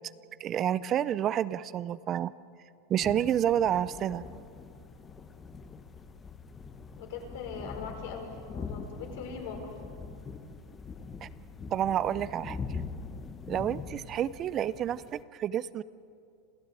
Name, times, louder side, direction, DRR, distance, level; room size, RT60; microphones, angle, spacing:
voice 1, 0.4-2.3 2.9-4.2 11.2-11.3 11.7-12.6 13.5-15.8, right 10 dB, 35° right, 17 dB, 0.5 m, -29 dB
sound 1, 3.0-15.2, left 4 dB, 20° left, 1.4 m, -43 dB
voice 2, 7.0-9.8, left 5 dB, 70° left, 3 dB, 5.2 m, -41 dB
28.0 x 15.0 x 9.1 m, 2.5 s
supercardioid pair, 130°, 0 cm